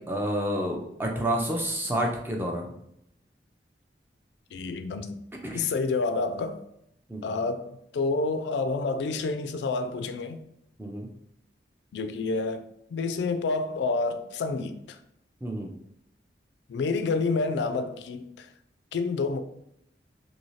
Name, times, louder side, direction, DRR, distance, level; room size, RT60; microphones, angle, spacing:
voice 1, 0.0-2.7 5.4-5.7 7.1-7.3 10.8-11.1 15.4-15.7, right 1 dB, 10° right, 0.4 m, -29 dB
voice 2, 4.5-5.2 5.5-6.6 7.2-10.4 11.9-12.7 12.9-15.0 16.7-18.5 18.9-19.4, left 3 dB, 80° left, 0.3 m, -29 dB
2.7 x 2.7 x 3.1 m
head